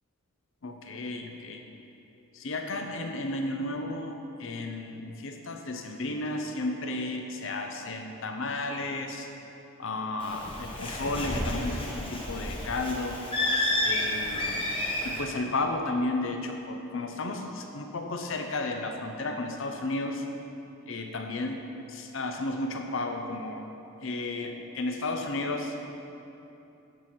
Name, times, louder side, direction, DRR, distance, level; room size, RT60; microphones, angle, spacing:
voice 1, 0.6-1.6 2.3-9.3 9.8-13.2 13.8-14.6 15.0-20.2 20.9-21.6 21.9-23.6 24.0-25.8, left 2 dB, 60° left, 4 dB, 0.6 m, -33 dB
Bird, 10.2-15.2, left 1 dB, 25° left, 1.2 m, -30 dB
10.5 x 8.2 x 4.3 m, 2.9 s
head